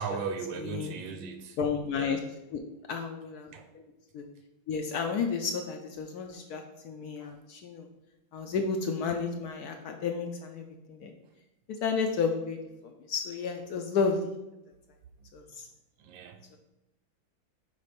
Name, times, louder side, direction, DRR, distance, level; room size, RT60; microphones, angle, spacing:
voice 1, 0.0-1.6 1.9-2.2 3.5-3.7 7.2-7.3 16.0-16.4, right 5 dB, 75° right, 5 dB, 1.4 m, -37 dB
voice 2, 0.6-0.9 1.6-2.2 2.5-2.6 2.9-3.8 4.1-4.2 4.7-7.9 8.3-11.1 11.8-14.3 15.3-15.6, left 5 dB, 75° left, 4 dB, 0.8 m, -32 dB
4.9 x 4.0 x 5.1 m, 0.94 s
omnidirectional pair, 2.2 m